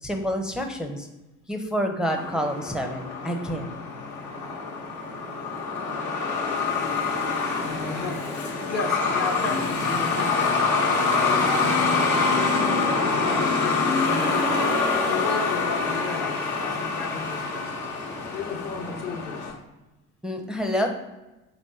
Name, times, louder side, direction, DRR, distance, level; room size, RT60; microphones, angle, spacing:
voice 1, 0.0-1.1 1.5-3.8 20.2-20.9, equal, ahead, 3 dB, 0.5 m, -28 dB
Truck, 2.1-19.5, left 4 dB, 75° left, 0.9 m, -25 dB
voice 2, 7.4-10.7 11.2-11.8 12.3-14.6 15.0-17.7 18.3-19.5, left 5 dB, 40° left, 4 dB, 0.6 m, -34 dB
3.3 x 3.0 x 4.1 m, 1.0 s
figure-of-eight pair, 55°, 42 cm